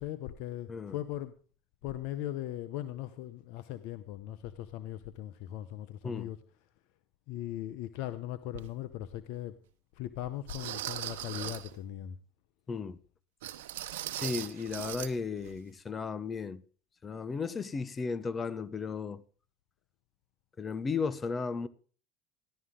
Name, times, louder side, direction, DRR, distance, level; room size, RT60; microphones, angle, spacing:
voice 1, 0.0-1.3 1.8-6.4 7.3-9.6 9.9-12.2, left 13 dB, 70° left, 0.8 m, -39 dB
sound 1, 8.5-8.7 9.4-9.5 10.5-11.8 13.4-15.1 15.4-15.6 16.0-16.1, right 13 dB, 85° right, 0.9 m, -39 dB
voice 2, 12.7-13.0 14.1-16.6 17.0-19.2 20.6-21.7, left 5 dB, 30° left, 0.9 m, -35 dB
15.0 x 11.0 x 3.8 m
supercardioid pair, 90°, 0 cm